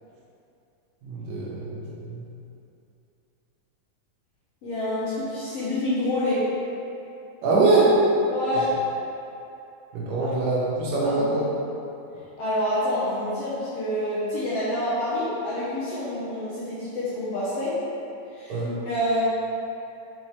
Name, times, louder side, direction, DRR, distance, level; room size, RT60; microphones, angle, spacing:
voice 1, 1.0-2.2 7.4-7.9 9.9-11.5 18.5-18.7, right 3 dB, 80° right, -7 dB, 2.7 m, -23 dB
voice 2, 4.6-6.4 8.3-8.6 11.0-11.3 12.4-17.7 18.4-18.5 18.8-19.2, left 1 dB, 65° left, -10 dB, 1.6 m, -27 dB
5.7 x 5.2 x 3.2 m, 2.8 s
omnidirectional pair, 3.7 m